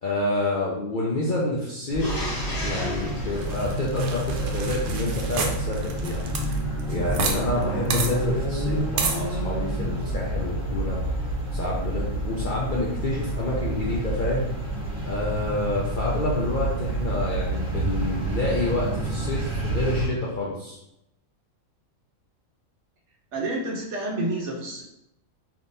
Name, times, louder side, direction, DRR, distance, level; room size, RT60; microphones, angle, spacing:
voice 1, 0.0-2.2 2.6-6.5 6.9-11.0 11.5-14.5 15.1-20.8, left 2 dB, 60° left, -5 dB, 0.5 m, -28 dB
sound 1, 1.9-20.1, right 1 dB, 25° right, 1.3 m, -28 dB
sound 2, 2.0-4.7 7.1-8.5, equal, 30° left, 1.7 m, -35 dB
sound 3, 3.4-7.4 7.6-7.7 7.9-8.1 9.0-9.2, right 5 dB, 90° right, 1.1 m, -30 dB
voice 2, 23.3-24.8, right 2 dB, 60° right, -1 dB, 0.9 m, -29 dB
3.6 x 2.9 x 2.6 m, 0.81 s
omnidirectional pair, 1.5 m